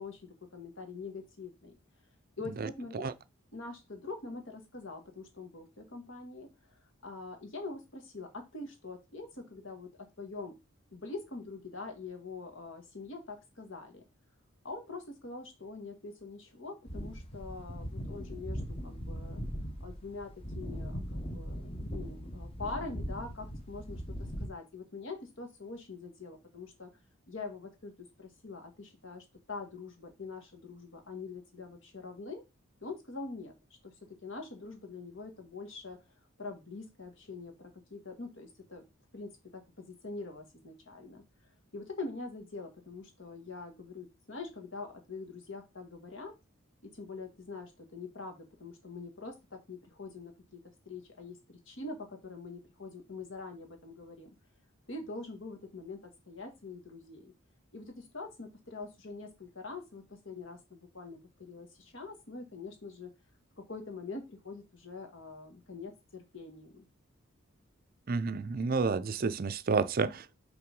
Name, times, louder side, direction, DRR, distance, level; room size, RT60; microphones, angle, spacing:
voice 1, 0.0-1.7 2.4-3.1 3.5-9.9 10.2-10.6 10.9-14.0 14.6-19.4 19.8-24.0 24.4-26.9 27.3-32.4 32.8-33.5 33.8-36.0 36.4-38.8 39.1-41.2 41.7-46.3 46.8-54.3 54.9-57.3 57.7-63.1 63.7-66.9, left 3 dB, 60° left, 1.8 m, -44 dB
sound 1, 16.9-24.5, equal, 25° left, 1.1 m, -40 dB
voice 2, 68.1-70.4, right 4 dB, 45° right, 0.5 m, -30 dB
5.8 x 4.0 x 5.3 m
head